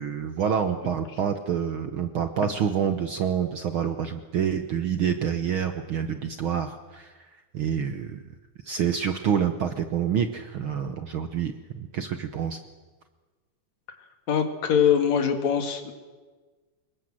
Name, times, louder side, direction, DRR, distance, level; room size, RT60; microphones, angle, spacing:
voice 1, 0.0-7.1 7.5-8.2 8.6-12.6, right 8 dB, 65° right, 8 dB, 1.3 m, -27 dB
voice 2, 14.3-15.9, left 8 dB, 65° left, 6 dB, 3.3 m, -22 dB
25.5 x 21.5 x 7.5 m, 1.4 s
omnidirectional pair, 3.5 m